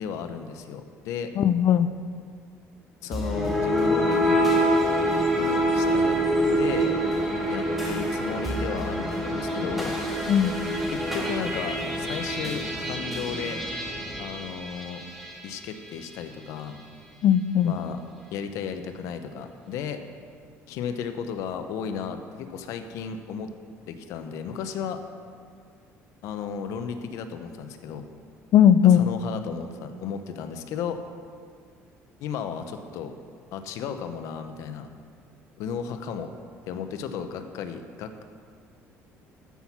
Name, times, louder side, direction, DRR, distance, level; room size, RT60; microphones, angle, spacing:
voice 1, 0.0-1.3 3.0-4.5 5.4-6.2 6.6-6.9 7.5-9.9 10.9-13.6 14.2-15.0 15.4-16.8 17.6-18.0 18.3-20.0 20.7-23.5 23.9-25.0 26.2-28.0 28.8-31.0 32.2-33.1 33.5-34.9 35.6-36.3 36.7-38.2, left 7 dB, 75° left, 8 dB, 0.9 m, -34 dB
voice 2, 1.4-1.9 10.3-10.6 17.2-17.7 28.5-29.1, left 9 dB, 55° left, 13 dB, 0.4 m, -18 dB
sound 1, 3.1-15.4, equal, ahead, 1.7 m, -26 dB
14.0 x 6.2 x 5.8 m, 2.1 s
cardioid pair, 130°, 5 cm